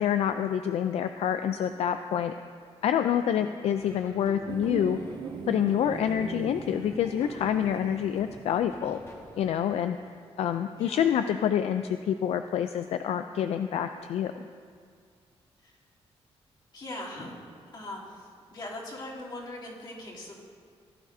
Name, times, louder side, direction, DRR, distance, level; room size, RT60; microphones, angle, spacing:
voice 1, 0.0-2.3 2.8-5.0 5.5-9.0 9.4-10.0 10.4-14.4, left 9 dB, 75° left, 9 dB, 0.4 m, -27 dB
Laughter / Drum, 3.7-9.7, left 2 dB, 25° left, 1.8 m, -50 dB
sound 1, 4.5-9.8 10.1-10.2, right 5 dB, 45° right, 0.7 m, -40 dB
voice 2, 16.7-17.5 17.7-20.4, left 1 dB, 45° left, -6 dB, 3.0 m, -41 dB
16.5 x 11.0 x 2.7 m, 2.1 s
cardioid pair, 130°, 11 cm